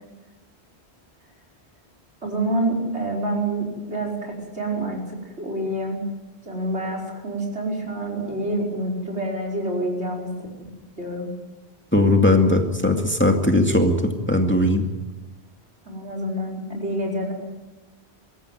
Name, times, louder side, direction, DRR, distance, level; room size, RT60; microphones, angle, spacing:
voice 1, 2.2-6.0 6.5-10.3 11.0-11.3 15.9-17.3, right 1 dB, 80° right, -1 dB, 5.5 m, -27 dB
voice 2, 11.9-14.0 14.3-14.8, left 1 dB, 10° left, 3 dB, 2.2 m, -18 dB
25.0 x 14.0 x 9.2 m, 1.1 s
omnidirectional pair, 1.1 m